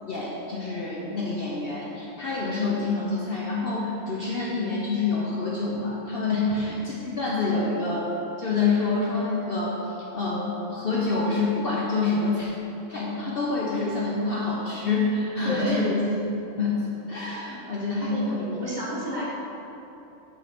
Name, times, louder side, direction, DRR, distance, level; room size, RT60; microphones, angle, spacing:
voice 1, 0.0-12.5 12.9-16.2 16.6-18.6, left 3 dB, 50° left, -5 dB, 0.9 m, -27 dB
voice 2, 15.4-15.9 18.0-19.2, equal, 35° right, -6 dB, 1.4 m, -31 dB
6.1 x 5.0 x 5.9 m, 2.9 s
omnidirectional pair, 1.3 m